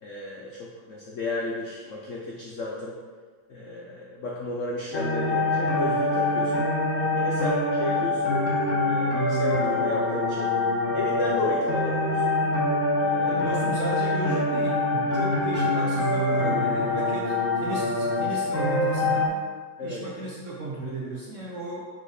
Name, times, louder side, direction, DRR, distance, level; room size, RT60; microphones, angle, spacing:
voice 1, 0.0-3.0 3.5-6.7 7.1-8.4 8.8-10.5 10.9-12.4 13.0-13.4 19.8-20.0, left 2 dB, 75° left, -3 dB, 0.7 m, -33 dB
sound 1, 4.9-19.3, left 2 dB, 45° left, 1.3 m, -25 dB
voice 2, 13.3-19.3 19.8-21.8, right 2 dB, 70° right, -3 dB, 0.7 m, -34 dB
5.0 x 4.3 x 4.7 m, 1.5 s
omnidirectional pair, 2.2 m